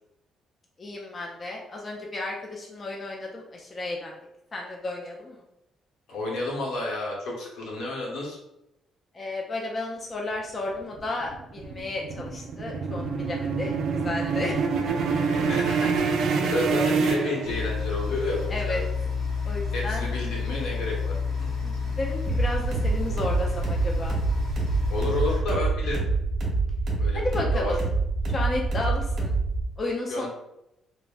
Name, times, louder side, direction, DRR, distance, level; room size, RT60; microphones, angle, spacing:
voice 1, 0.8-4.2 4.5-5.4 9.1-14.9 16.4-16.5 18.5-18.8 19.4-20.1 21.6-24.2 27.1-27.8 28.3-29.3 29.8-30.3, left 2 dB, 25° left, -1 dB, 0.3 m, -33 dB
voice 2, 6.1-8.4 15.5-15.9 16.2-18.8 19.7-21.5 24.9-26.0 27.0-27.2 27.5-27.7 30.1-30.3, left 2 dB, 80° left, -3 dB, 0.9 m, -31 dB
sound 1, 10.7-18.0, right 5 dB, 65° right, 0.3 m, -26 dB
sound 2, 17.4-25.4, left 5 dB, 45° left, 0.8 m, -30 dB
sound 3, 22.3-29.6, right 3 dB, 50° right, 1.0 m, -26 dB
3.3 x 2.0 x 2.4 m, 0.86 s
cardioid pair, 160°, 0 cm